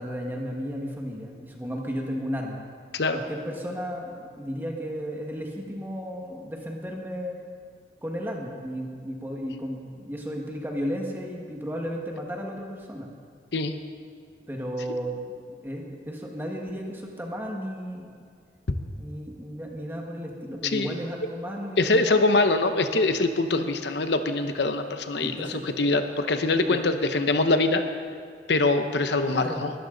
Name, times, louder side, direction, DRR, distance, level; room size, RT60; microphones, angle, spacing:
voice 1, 0.0-2.6 3.1-7.4 8.0-13.1 14.5-15.2 15.6-18.2 19.0-22.2 25.2-25.6 26.7-26.8 29.3-29.7, equal, 10° right, 0 dB, 1.6 m, -34 dB
voice 2, 20.6-21.0 21.8-27.9 28.5-29.7, left 2 dB, 80° left, 8 dB, 0.9 m, -23 dB
21.0 x 13.5 x 3.9 m, 2.2 s
head